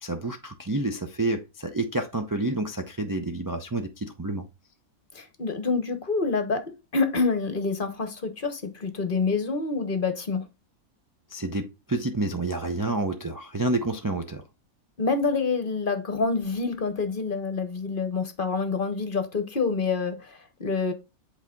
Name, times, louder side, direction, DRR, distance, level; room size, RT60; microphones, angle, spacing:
voice 1, 0.0-4.5 11.3-14.4, right 2 dB, 35° right, 0.3 m, -29 dB
voice 2, 5.1-10.4 15.0-20.9, left 4 dB, 40° left, 1.0 m, -27 dB
8.2 x 4.2 x 3.7 m
omnidirectional pair, 1.6 m